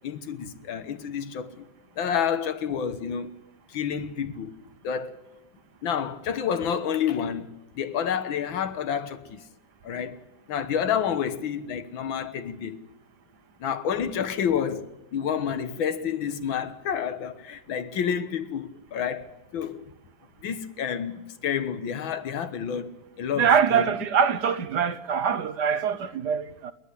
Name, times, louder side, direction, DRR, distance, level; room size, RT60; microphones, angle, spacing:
voice 1, 0.0-1.7 2.0-3.4 3.7-4.6 4.8-5.2 5.8-9.4 9.8-10.2 10.5-12.8 13.6-19.8 20.4-22.9 23.2-23.9, left 8 dB, 85° left, 2.0 m, -29 dB
voice 2, 23.3-26.7, right 7 dB, 60° right, 1.4 m, -23 dB
30.0 x 10.5 x 9.8 m
omnidirectional pair, 2.1 m